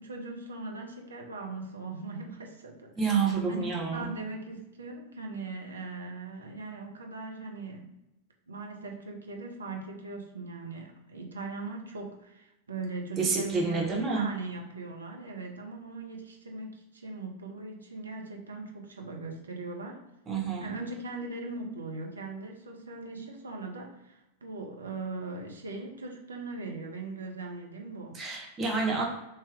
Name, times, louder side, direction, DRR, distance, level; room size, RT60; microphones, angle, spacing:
voice 1, 0.0-7.9 8.5-20.0 20.6-28.2, right 3 dB, 75° right, 1 dB, 0.7 m, -40 dB
voice 2, 3.0-4.1 13.2-14.3 20.3-20.7 28.1-29.0, right 4 dB, 25° right, -2 dB, 1.1 m, -28 dB
3.3 x 2.9 x 3.4 m, 0.92 s
figure-of-eight pair, 90°, 0 cm